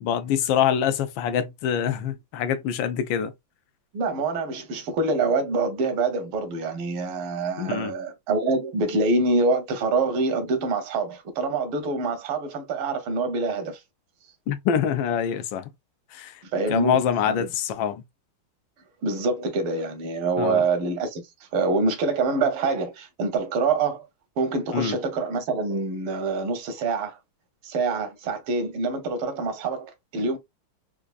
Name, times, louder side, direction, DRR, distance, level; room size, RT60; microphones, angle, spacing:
voice 1, 0.0-3.3 7.6-7.9 14.5-15.7 16.1-16.4 16.7-18.0 20.4-20.6 24.7-24.9, left 8 dB, 75° left, 1.2 m, -25 dB
voice 2, 3.9-13.8 16.5-17.5 19.0-21.2 21.5-24.1 24.4-27.2 27.6-30.4, right 3 dB, 80° right, 1.8 m, -25 dB
4.5 x 2.4 x 2.4 m
omnidirectional pair, 2.3 m